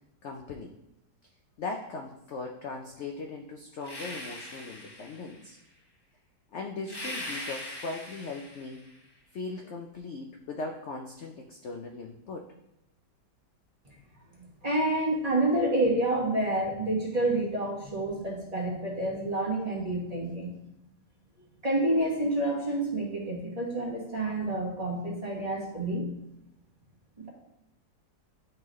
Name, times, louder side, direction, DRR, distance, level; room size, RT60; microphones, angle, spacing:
voice 1, 0.2-0.7 1.6-5.6 6.5-8.9 9.3-12.5, left 3 dB, 75° left, 2 dB, 0.6 m, -39 dB
sound 1, 3.8-5.5 6.8-8.9, left 1 dB, 20° left, 0.7 m, -40 dB
voice 2, 14.4-20.5 21.6-26.1 27.2-27.3, right 1 dB, 25° right, -5 dB, 1.4 m, -28 dB
10.5 x 3.7 x 3.1 m, 0.86 s
omnidirectional pair, 1.9 m